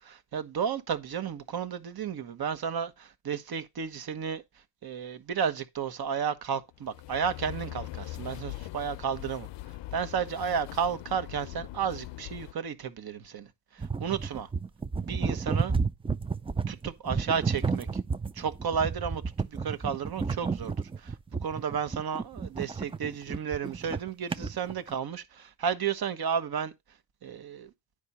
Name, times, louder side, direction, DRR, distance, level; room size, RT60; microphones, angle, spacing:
voice 1, 0.1-4.4 4.8-9.5 9.9-13.5 13.7-14.5 15.0-15.7 16.7-17.9 18.3-21.2 21.4-26.7 27.2-27.7, right 7 dB, 50° right, 1.2 m, -32 dB
sound 1, 6.7-12.5, left 16 dB, 65° left, 0.6 m, -41 dB
sound 2, 13.8-24.9, right 5 dB, 10° right, 0.4 m, -32 dB
9.7 x 5.0 x 4.1 m
cardioid pair, 80°, 48 cm